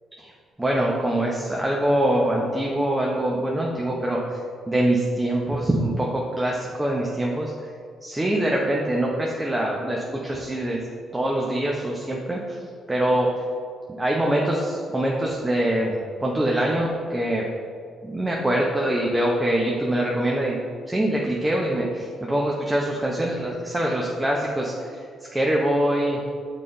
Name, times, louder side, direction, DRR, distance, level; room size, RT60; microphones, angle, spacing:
voice 1, 0.6-4.4 4.7-7.7 8.0-10.8 11.1-12.6 12.9-13.3 14.0-17.4 18.0-20.6 20.9-26.2, right 1 dB, 15° right, -2 dB, 0.7 m, -24 dB
6.5 x 3.9 x 3.7 m, 2.2 s
cardioid pair, 90°, 0 cm